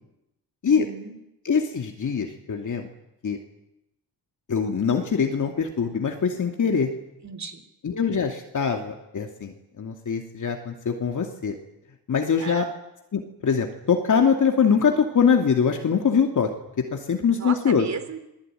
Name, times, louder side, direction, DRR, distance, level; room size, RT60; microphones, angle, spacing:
voice 1, 0.7-1.2 7.2-7.6 12.4-12.7 17.3-18.2, right 5 dB, 40° right, 10 dB, 3.5 m, -35 dB
voice 2, 1.4-2.9 3.2-3.4 4.5-6.9 7.8-11.5 12.1-12.7 13.1-16.5 16.9-17.9, left 6 dB, 45° left, 3 dB, 2.6 m, -23 dB
28.0 x 20.5 x 9.2 m, 0.87 s
wide cardioid pair, 130°, 42 cm